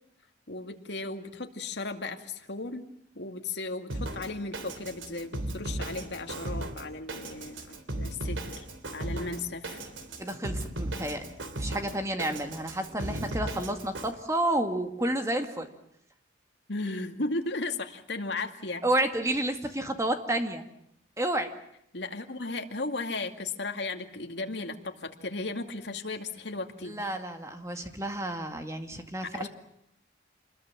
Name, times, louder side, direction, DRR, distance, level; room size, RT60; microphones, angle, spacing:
voice 1, 0.5-2.8 3.2-8.6 8.9-9.8 16.7-18.8 21.9-27.0 29.2-29.5, left 3 dB, 65° left, 5 dB, 2.3 m, -35 dB
Drum kit, 3.9-14.1, right 1 dB, 90° right, 3.1 m, -36 dB
voice 2, 10.2-15.7 18.8-20.7 21.2-21.5 26.8-29.5, right 1 dB, 15° right, 6 dB, 2.1 m, -30 dB
27.5 x 21.0 x 7.5 m, 0.74 s
head